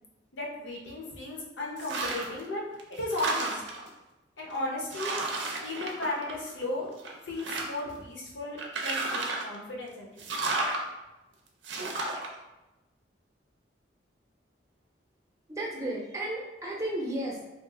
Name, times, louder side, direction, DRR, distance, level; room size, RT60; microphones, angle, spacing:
voice 1, 0.3-2.6 3.0-3.6 4.4-6.9 7.3-10.3, left 2 dB, 80° left, -3 dB, 0.8 m, -35 dB
sound 1, 1.8-2.4 2.8-3.9 4.5-4.6 4.9-6.6 7.0-7.9 8.6-9.6 10.2-10.8 11.6-12.3, right 2 dB, 80° right, 0.5 m, -32 dB
voice 2, 15.5-17.4, right 1 dB, 15° right, -3 dB, 0.6 m, -33 dB
2.6 x 2.4 x 3.7 m, 1.0 s
head